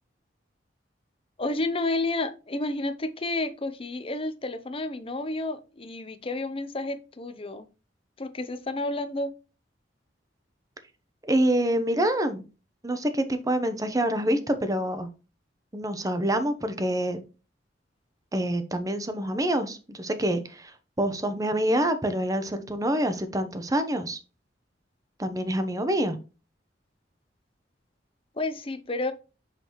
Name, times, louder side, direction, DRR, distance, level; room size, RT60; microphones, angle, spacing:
voice 1, 1.4-7.7 8.2-9.3 28.4-29.1, left 2 dB, 30° left, 0.7 m, -30 dB
voice 2, 11.2-12.4 12.8-15.1 15.7-17.2 18.3-24.2 25.2-26.2, right 1 dB, 20° right, 0.8 m, -26 dB
6.0 x 5.8 x 3.0 m
head